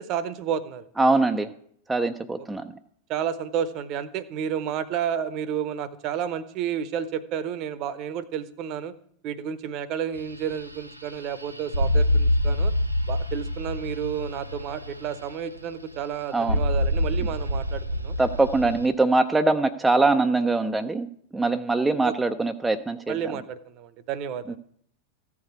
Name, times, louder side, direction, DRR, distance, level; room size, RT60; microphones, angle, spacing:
voice 1, 0.0-0.9 3.1-8.9 9.2-12.7 13.1-18.2 22.0-22.1 23.1-24.6, right 8 dB, 40° right, 17 dB, 0.8 m, -31 dB
voice 2, 1.0-1.5 1.9-2.6 16.3-16.6 18.2-21.1 21.3-23.2, right 3 dB, 10° right, 7 dB, 0.5 m, -22 dB
sound 1, 10.1-18.9, left 1 dB, 85° right, 0.7 m, -27 dB
14.5 x 4.8 x 8.4 m, 0.67 s
figure-of-eight pair, 90°, 0 cm